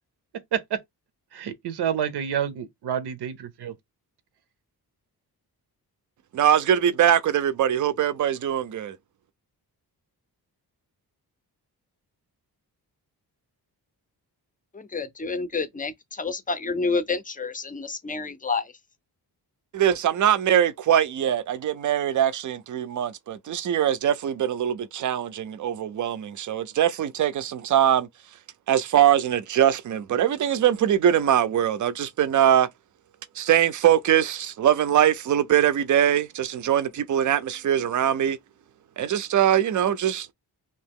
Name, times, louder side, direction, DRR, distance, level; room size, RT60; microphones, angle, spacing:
voice 1, 1.3-3.7, right 9 dB, 90° right, 0.6 m, -28 dB
voice 2, 6.3-9.0 19.7-28.1 28.7-32.7 33.4-38.4 39.0-40.3, right 10 dB, 50° right, 0.4 m, -22 dB
voice 3, 14.7-18.7, left 4 dB, 20° left, 0.5 m, -29 dB
2.9 x 2.7 x 3.5 m
wide cardioid pair, 155°, 39 cm